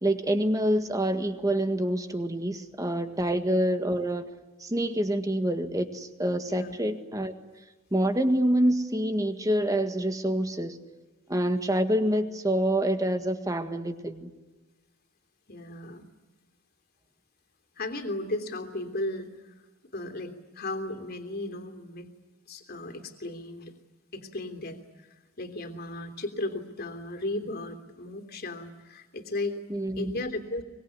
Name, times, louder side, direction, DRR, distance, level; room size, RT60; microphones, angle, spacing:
voice 1, 0.0-4.2 4.6-7.3 7.9-10.8 11.3-14.3 29.7-30.1, right 1 dB, 15° right, 8 dB, 1.8 m, -26 dB
voice 2, 15.5-16.0 17.8-19.5 19.9-22.1 22.5-23.7 24.1-29.6 29.9-30.6, left 2 dB, 50° left, 6 dB, 3.2 m, -35 dB
24.5 x 22.5 x 9.9 m, 1.2 s
head